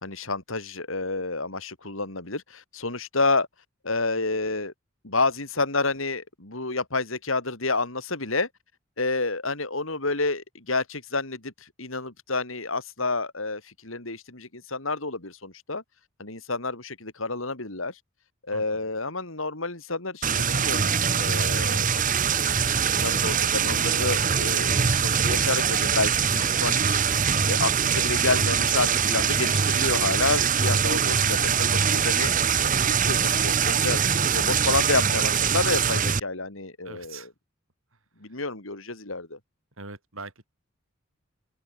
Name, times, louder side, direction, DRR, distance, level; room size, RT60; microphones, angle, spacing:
voice 1, 0.0-3.5 3.8-4.7 5.0-8.5 9.0-15.8 16.2-18.0 18.5-21.9 23.0-27.0 27.5-32.3 32.7-34.0 34.3-37.3 38.2-39.4, left 3 dB, 70° left, 3.9 m, -29 dB
voice 2, 18.5-18.8 30.7-31.0 36.8-37.3 38.3-38.4 39.8-40.5, right 3 dB, 75° right, 5.4 m, -42 dB
sound 1, 20.2-36.2, right 7 dB, 40° right, 1.3 m, -23 dB
open air
head